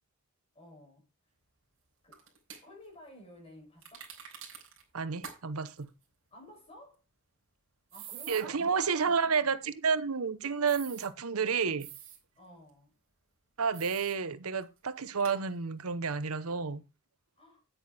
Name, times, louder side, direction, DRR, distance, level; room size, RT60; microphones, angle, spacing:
voice 1, 0.5-1.1 2.0-2.2 2.6-4.1 6.3-7.0 7.9-9.5 12.4-12.9 17.4-17.6, left 1 dB, 25° left, 6.3 m, -53 dB
sound 1, 2.1-2.6 3.8-4.8 5.2-5.4 5.7-5.8 7.9-8.4 10.7-11.1 11.8-12.2 13.7-14.2 14.6-14.7 15.2-15.4, right 8 dB, 65° right, 4.2 m, -46 dB
voice 2, 4.9-5.9 8.3-11.9 13.6-16.8, right 5 dB, 90° right, 0.9 m, -30 dB
9.6 x 9.0 x 4.1 m
head